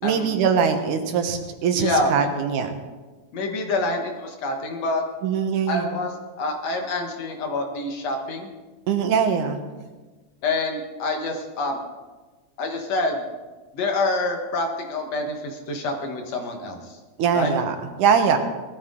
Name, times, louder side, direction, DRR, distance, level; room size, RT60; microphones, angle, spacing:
voice 1, 0.0-2.8 5.2-5.9 8.9-9.6 17.2-18.4, right 6 dB, 85° right, 6 dB, 2.7 m, -22 dB
voice 2, 1.7-2.3 3.3-5.0 5.7-8.5 10.4-11.8 12.6-13.2 13.7-16.9 17.3-17.5, left 2 dB, 65° left, 3 dB, 2.5 m, -26 dB
19.0 x 13.0 x 3.9 m, 1.3 s
omnidirectional pair, 3.5 m